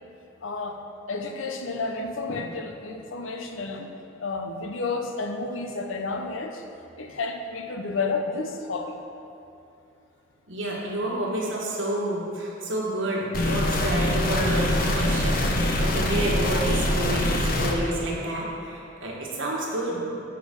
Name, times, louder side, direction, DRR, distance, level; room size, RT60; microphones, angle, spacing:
voice 1, 0.4-0.8 1.1-3.9 4.2-6.6 7.0-9.0, left 3 dB, 80° left, 4 dB, 0.7 m, -31 dB
voice 2, 10.5-20.3, right 1 dB, 75° right, -3 dB, 1.5 m, -29 dB
sound 1, 13.3-17.7, left 1 dB, 45° left, 0.7 m, -24 dB
6.3 x 5.0 x 6.7 m, 2.8 s
head